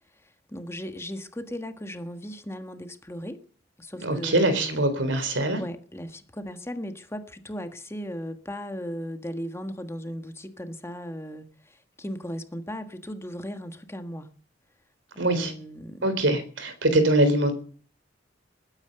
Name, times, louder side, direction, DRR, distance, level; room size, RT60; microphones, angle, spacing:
voice 1, 0.2-3.4 3.8-4.8 5.2-14.3 15.2-16.1, equal, 15° left, 1.5 m, -37 dB
voice 2, 4.0-5.6 15.2-15.5 16.0-17.5, right 1 dB, 70° right, 4.0 m, -23 dB
21.0 x 9.6 x 6.8 m
head